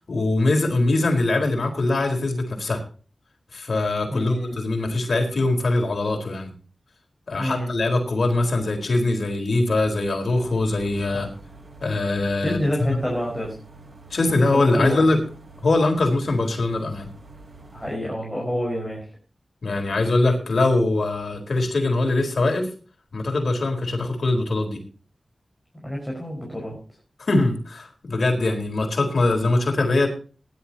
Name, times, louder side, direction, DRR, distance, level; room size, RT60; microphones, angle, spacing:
voice 1, 0.0-2.8 3.5-6.5 7.3-11.3 11.8-12.6 14.1-15.2 15.6-17.1 19.6-22.7 23.1-24.8 27.2-30.1, left 2 dB, 65° left, 3 dB, 4.0 m, -22 dB
voice 2, 4.1-4.5 7.4-7.7 11.1-11.2 12.4-13.5 14.5-15.0 17.7-19.1 25.8-26.8, equal, 5° left, -3 dB, 5.1 m, -27 dB
sound 1, 10.2-18.0, right 2 dB, 45° right, 1.7 m, -46 dB
19.5 x 11.0 x 2.9 m, 0.37 s
wide cardioid pair, 105°, 0 cm